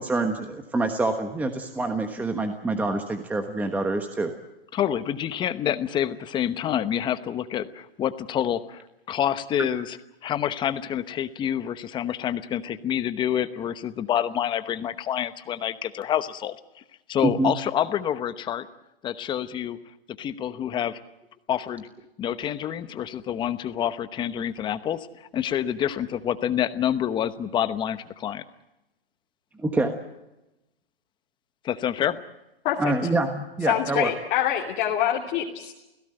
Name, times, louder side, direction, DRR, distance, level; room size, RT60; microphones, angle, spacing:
voice 1, 0.0-4.3 9.6-9.7 17.2-17.5 29.6-29.9 32.8-34.1, right 2 dB, 5° right, 6 dB, 1.3 m, -26 dB
voice 2, 4.7-10.0 10.2-16.5 17.1-18.7 19.0-19.8 20.2-21.0 21.5-21.9 22.2-28.4 31.6-32.2, left 10 dB, 15° left, 12 dB, 1.0 m, -27 dB
voice 3, 33.6-35.7, left 11 dB, 30° left, -1 dB, 2.8 m, -25 dB
29.0 x 17.0 x 7.8 m, 0.96 s
hypercardioid pair, 150°, 30 cm